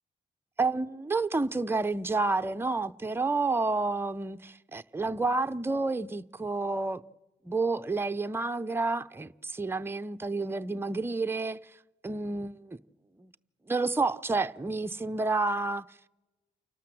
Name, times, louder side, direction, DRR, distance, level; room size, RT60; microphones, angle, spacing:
voice 1, 0.6-7.0 7.4-11.6 12.0-12.8 13.2-13.3 13.7-15.9, right 3 dB, 10° right, 0.7 m, -30 dB
28.5 x 12.5 x 7.7 m
supercardioid pair, 60°, 18 cm